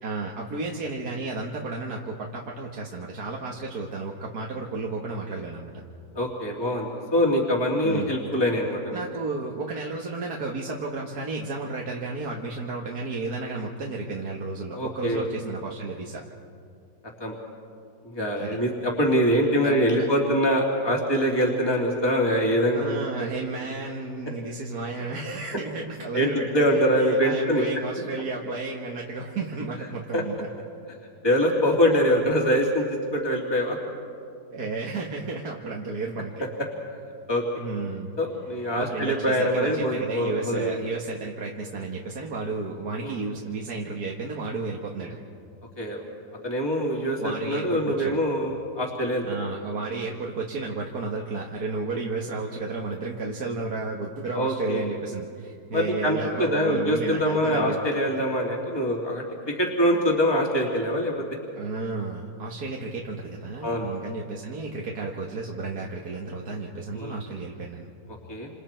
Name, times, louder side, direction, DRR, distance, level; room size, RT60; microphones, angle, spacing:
voice 1, 0.0-5.7 7.8-8.2 8.9-16.2 18.4-18.6 19.6-20.1 22.7-30.5 34.5-36.5 37.6-38.1 38.8-45.2 47.2-48.2 49.2-57.8 61.6-67.9, right 3 dB, 65° right, -1 dB, 2.1 m, -32 dB
voice 2, 6.1-9.0 14.7-15.2 17.2-17.3 18.1-23.0 26.1-27.6 30.1-30.2 31.2-33.8 37.3-37.4 38.2-40.7 43.0-43.1 45.8-46.0 46.4-49.2 54.3-54.9 55.7-59.2 59.6-61.2 63.6-63.9 66.9-67.1 68.3-68.5, equal, 15° left, -1 dB, 2.8 m, -24 dB
29.0 x 28.0 x 4.5 m, 2.3 s
omnidirectional pair, 1.8 m